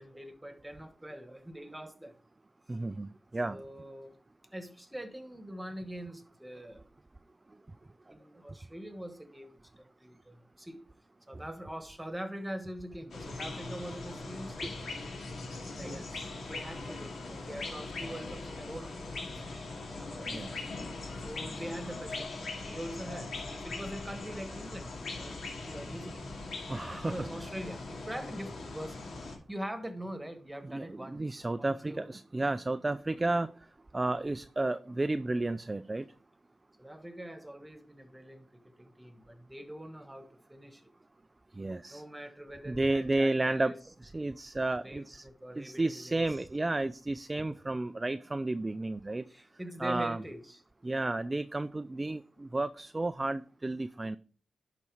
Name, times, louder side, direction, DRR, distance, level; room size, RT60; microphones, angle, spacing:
voice 1, 0.0-2.1 3.5-4.1 4.5-6.8 8.1-10.8 11.3-14.7 15.7-16.0 16.4-19.3 19.9-20.4 21.2-22.3 22.6-26.3 27.0-29.0 29.2-32.1 36.8-38.5 38.8-40.9 41.9-43.8 44.7-46.4 49.3-50.6, right 1 dB, 10° right, 1.4 m, -43 dB
voice 2, 2.7-3.6 14.6-14.7 15.8-16.3 20.2-20.7 26.7-27.1 30.7-33.5 33.9-36.1 41.5-42.0 42.7-43.8 44.0-45.2 45.6-49.3 49.8-50.2 50.8-54.2, right 2 dB, 25° right, 0.4 m, -32 dB
sound 1, 13.1-29.4, left 3 dB, 75° left, 2.4 m, -40 dB
11.0 x 4.1 x 4.7 m
cardioid pair, 60°, 0 cm